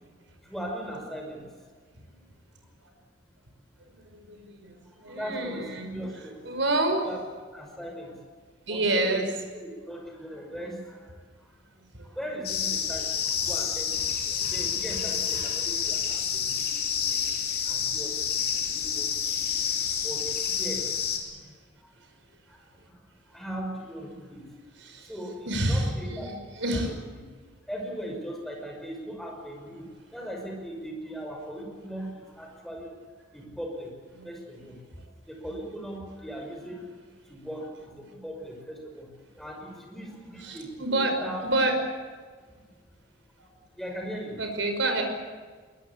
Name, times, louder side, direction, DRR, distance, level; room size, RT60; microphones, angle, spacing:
voice 1, 0.4-1.7 4.8-6.5 7.0-7.2 7.5-8.2 8.7-9.2 9.5-11.6 12.0-17.4 17.6-19.6 20.0-21.0 21.7-21.9 22.5-24.6 25.0-26.3 26.7-26.8 27.2-27.3 27.6-33.0 33.3-34.8 35.3-41.5 42.5-42.8 43.8-44.4, equal, ahead, 1 dB, 5.8 m, -39 dB
voice 2, 3.8-5.9 6.4-7.1 8.7-9.4 10.6-10.7 11.9-12.1 14.6-15.1 21.2-21.4 24.8-25.1 25.5-26.9 34.1-34.3 40.4-41.8 43.4-43.5 44.4-45.0, right 2 dB, 75° right, 4 dB, 5.4 m, -29 dB
sound 1, 12.4-21.2, left 7 dB, 50° left, 3.5 m, -29 dB
22.0 x 21.5 x 8.6 m, 1.5 s
head